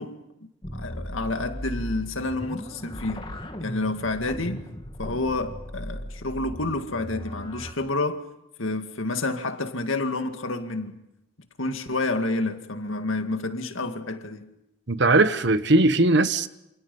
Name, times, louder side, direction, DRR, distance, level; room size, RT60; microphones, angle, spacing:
voice 1, 0.0-3.3 3.6-4.7 5.0-8.3 8.6-11.0 11.6-14.5, left 2 dB, 80° left, 2.2 m, -29 dB
sound 1, 0.6-7.7, equal, 25° left, 2.2 m, -37 dB
voice 2, 14.9-16.5, right 2 dB, 55° right, 1.1 m, -19 dB
28.0 x 27.5 x 5.5 m
head